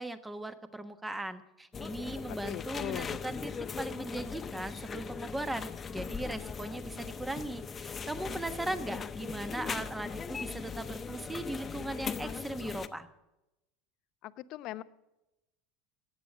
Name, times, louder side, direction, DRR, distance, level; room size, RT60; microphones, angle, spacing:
voice 1, 0.0-3.5 3.8-13.1, right 2 dB, 10° right, 11 dB, 1.2 m, -38 dB
sound 1, 1.7-12.9, left 6 dB, 25° left, 0.9 m, -39 dB
voice 2, 2.3-3.2 14.2-14.8, left 15 dB, 55° left, 15 dB, 0.6 m, -40 dB
15.5 x 9.4 x 6.2 m, 0.93 s
hypercardioid pair, 80°, 0 cm